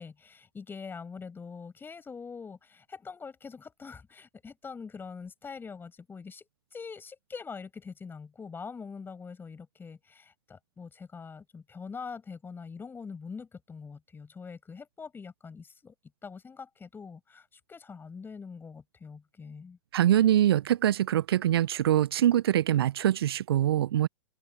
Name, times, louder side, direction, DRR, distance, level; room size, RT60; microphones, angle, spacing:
voice 1, 0.0-15.9 16.2-19.8, left 5 dB, 15° left, 7.8 m, -44 dB
voice 2, 19.9-24.1, right 11 dB, 65° right, 0.8 m, -24 dB
open air
figure-of-eight pair, 100°, 14 cm